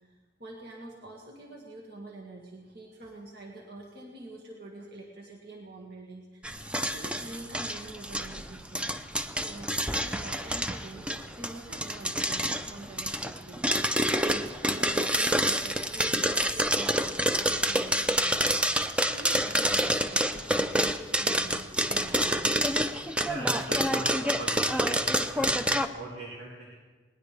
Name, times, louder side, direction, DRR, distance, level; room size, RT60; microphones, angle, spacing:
voice 1, 0.0-13.7 14.3-22.6, right 2 dB, 60° right, -2 dB, 2.0 m, -46 dB
sound 1, 6.4-25.9, right 1 dB, 5° right, 0.5 m, -28 dB
voice 2, 23.2-26.7, right 1 dB, 85° right, -4 dB, 2.5 m, -41 dB
20.0 x 19.5 x 3.4 m, 1.4 s
head